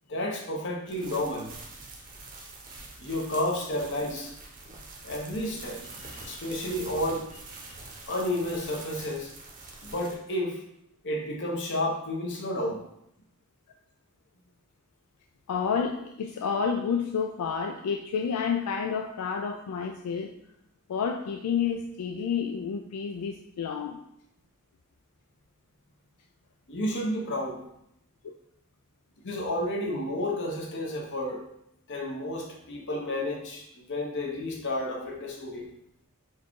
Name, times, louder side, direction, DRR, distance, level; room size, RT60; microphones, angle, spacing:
voice 1, 0.1-1.5 3.0-4.3 5.0-5.8 6.2-7.3 8.0-9.3 9.8-10.6 11.0-12.8 26.7-27.6 29.2-31.5 31.9-35.7, left 1 dB, 55° left, -1 dB, 1.0 m, -31 dB
sound 1, 0.9-10.2, right 3 dB, 40° right, 0.8 m, -45 dB
voice 2, 15.5-20.3 20.9-24.0, left 6 dB, 90° left, 4 dB, 0.3 m, -30 dB
4.5 x 2.4 x 4.6 m, 0.77 s
head